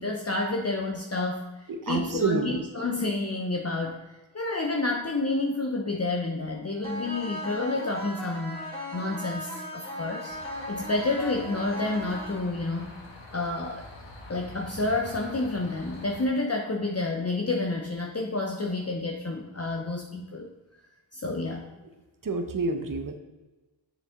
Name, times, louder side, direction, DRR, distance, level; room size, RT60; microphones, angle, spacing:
voice 1, 0.0-1.5 1.8-8.6 8.9-10.4 10.7-13.0 13.3-13.8 14.3-20.5 21.1-21.7, left 2 dB, 35° left, 1 dB, 0.8 m, -29 dB
voice 2, 1.7-2.6 22.2-23.2, right 3 dB, 45° right, 6 dB, 0.9 m, -28 dB
sound 1, 6.8-12.8, left 1 dB, 15° left, 2.0 m, -37 dB
sound 2, 10.3-16.3, left 2 dB, 75° left, 1.4 m, -45 dB
7.1 x 6.3 x 3.7 m, 1.1 s
cardioid pair, 50°, 44 cm